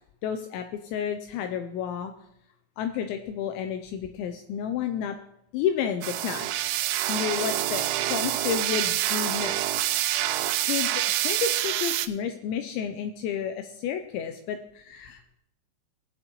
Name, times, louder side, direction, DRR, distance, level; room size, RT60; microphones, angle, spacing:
voice 1, 0.2-2.1 2.8-5.2 5.5-9.6 10.7-15.4, left 8 dB, 85° left, 7 dB, 2.7 m, -31 dB
sound 1, 6.0-12.1, right 14 dB, 85° right, 3.0 m, -27 dB
21.0 x 7.8 x 3.1 m, 0.78 s
omnidirectional pair, 5.7 m